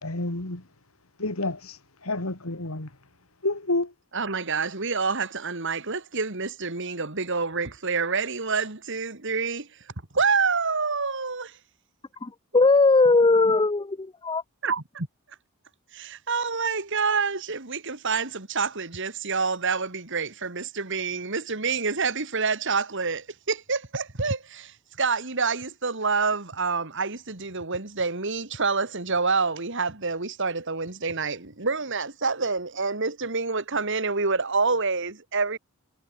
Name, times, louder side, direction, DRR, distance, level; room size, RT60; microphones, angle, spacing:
voice 1, 0.0-0.7 1.2-3.0 3.4-3.9, left 2 dB, 80° left, 2.7 m, -29 dB
voice 2, 4.1-11.6 14.6-15.1 15.9-35.6, right 4 dB, 60° right, 2.6 m, -27 dB
voice 3, 12.2-14.4, left 3 dB, 20° left, 0.5 m, -19 dB
head